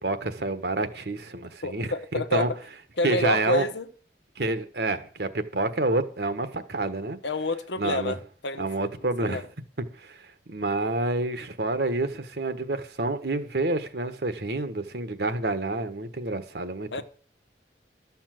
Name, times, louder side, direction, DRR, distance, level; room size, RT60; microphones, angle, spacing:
voice 1, 0.0-1.9 2.3-2.5 3.0-3.7 4.4-7.2 7.8-8.2 8.6-9.5 10.0-10.2 10.5-17.0, right 2 dB, 65° right, 1.4 m, -28 dB
voice 2, 1.6-2.4 3.0-3.9 7.2-8.2 8.4-8.9 9.2-9.4 16.9-17.0, left 2 dB, 85° left, 1.2 m, -28 dB
12.5 x 7.2 x 7.8 m
head